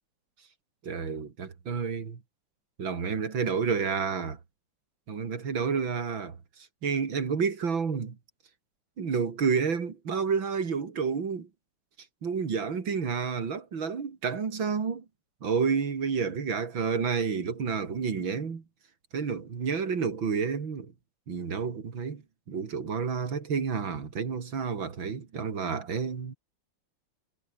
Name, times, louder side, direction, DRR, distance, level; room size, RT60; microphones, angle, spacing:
voice 1, 0.8-2.2 2.8-4.4 5.1-6.4 6.8-8.2 9.0-11.5 12.2-15.0 15.4-18.6 19.1-20.9 21.3-22.2 22.5-26.4, right 5 dB, 85° right, 3.4 m, -30 dB
omnidirectional pair, 2.1 m